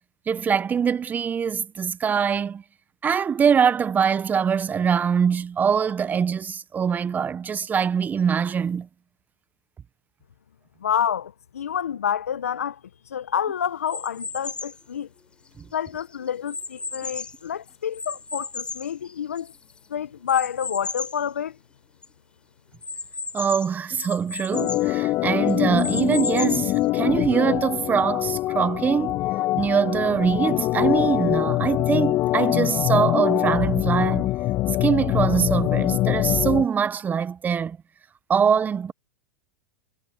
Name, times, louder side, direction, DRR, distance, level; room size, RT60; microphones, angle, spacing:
voice 1, 0.3-2.6 3.0-8.9 23.3-29.2 29.6-34.3 34.8-37.8 38.3-38.9, right 7 dB, 20° right, 1.3 m, -23 dB
voice 2, 10.8-12.8 13.1-15.1 15.7-19.5 19.9-21.5, left 9 dB, 80° left, 1.4 m, -28 dB
sound 1, 13.9-14.8 15.5-17.5 17.9-19.6 20.3-21.2 21.7-21.8 22.0-22.1 22.8-24.9 25.5-26.8, left 4 dB, 15° left, 4.3 m, -34 dB
Organ, 24.5-36.7, left 16 dB, 40° left, 2.0 m, -24 dB
hypercardioid pair, 100°, 8 cm